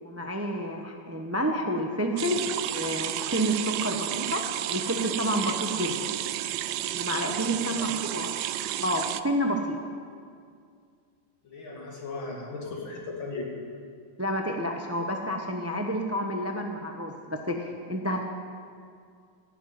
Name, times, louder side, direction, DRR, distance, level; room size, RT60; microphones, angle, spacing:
voice 1, 0.0-3.5 3.8-6.1 6.9-8.3 8.8-9.8 14.2-18.2, equal, 15° right, 3 dB, 0.5 m, -29 dB
sound 1, 2.2-9.2, right 13 dB, 75° right, 1.2 m, -32 dB
voice 2, 7.5-7.9 11.4-13.7, left 3 dB, 75° left, -2 dB, 3.3 m, -37 dB
16.5 x 7.3 x 9.3 m, 2.2 s
omnidirectional pair, 2.2 m